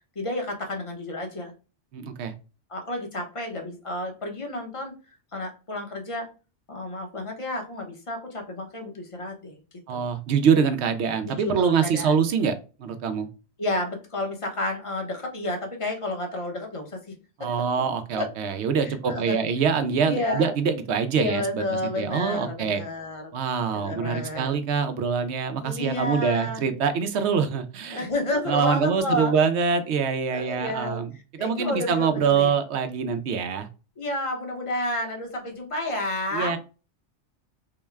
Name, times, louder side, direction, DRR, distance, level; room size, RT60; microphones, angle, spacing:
voice 1, 0.1-1.5 2.7-4.9 5.3-6.3 6.7-9.5 9.9-10.0 11.2-12.1 13.6-17.0 17.4-17.5 18.1-18.2 18.8-19.4 20.0-20.5 21.1-23.3 23.7-24.5 25.6-26.6 27.9-29.3 30.3-32.5 34.0-36.5, left 1 dB, 30° left, 2 dB, 0.8 m, -31 dB
voice 2, 1.9-2.3 9.9-13.3 17.4-21.6 22.0-22.8 23.3-28.1 28.5-31.1 31.3-33.7 36.3-36.6, right 6 dB, 70° right, 9 dB, 0.8 m, -24 dB
3.7 x 2.1 x 3.4 m, 0.33 s
omnidirectional pair, 1.2 m